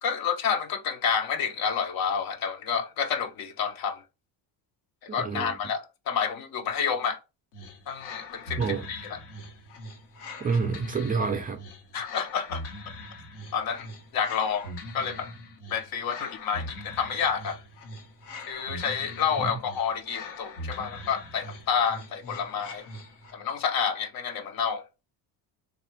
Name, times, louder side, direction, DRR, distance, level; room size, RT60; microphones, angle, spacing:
voice 1, 0.0-4.0 5.1-7.2 7.9-8.6 8.9-9.2 11.9-12.6 13.5-13.9 14.1-15.3 15.7-17.6 18.5-22.9 23.3-24.8, left 7 dB, 60° left, 0.8 m, -29 dB
voice 2, 5.2-5.6 8.6-8.9 10.4-11.6 19.4-19.5, right 5 dB, 20° right, 0.4 m, -28 dB
sound 1, 7.5-23.5, left 1 dB, 85° left, 1.2 m, -42 dB
3.2 x 2.4 x 4.4 m
cardioid pair, 140°, 41 cm